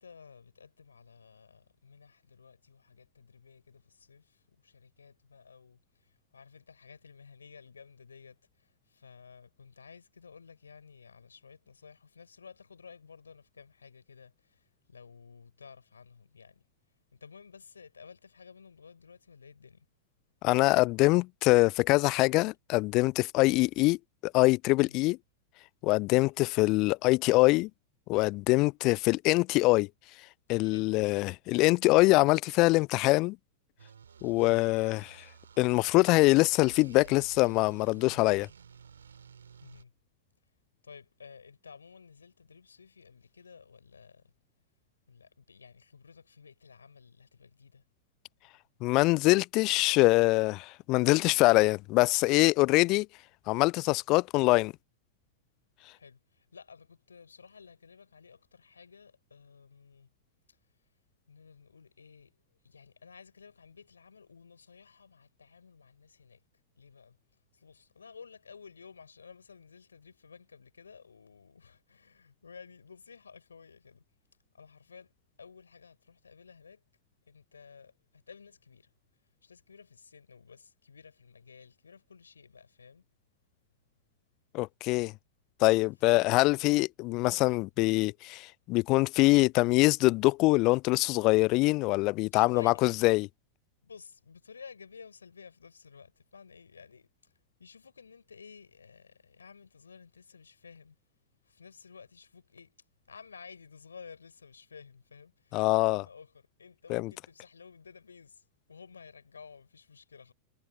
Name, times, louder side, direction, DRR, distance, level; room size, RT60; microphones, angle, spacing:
voice 1, 0.0-16.6 17.1-19.9 24.7-25.0 30.5-31.1 39.6-39.9 40.8-44.2 45.1-47.8 55.9-60.1 61.3-62.3 62.6-66.4 66.8-67.2 67.5-74.0 74.5-75.1 75.4-76.8 77.3-77.9 78.3-78.9 79.4-83.0 92.3-92.9 93.8-97.3 97.6-101.0 101.5-102.8 103.1-108.4 108.7-110.3, left 5 dB, 75° left, 4.7 m, -53 dB
voice 2, 20.4-24.0 24.2-25.2 25.8-27.7 28.1-29.9 30.5-33.4 34.2-35.2 35.6-38.5 48.8-53.1 53.5-54.7 84.5-85.1 85.6-93.3 105.5-106.0 106.9-107.1, left 22 dB, 40° left, 0.4 m, -24 dB
sound 1, 33.8-39.8, right 7 dB, 70° right, 2.8 m, -53 dB
figure-of-eight pair, 90°, 0 cm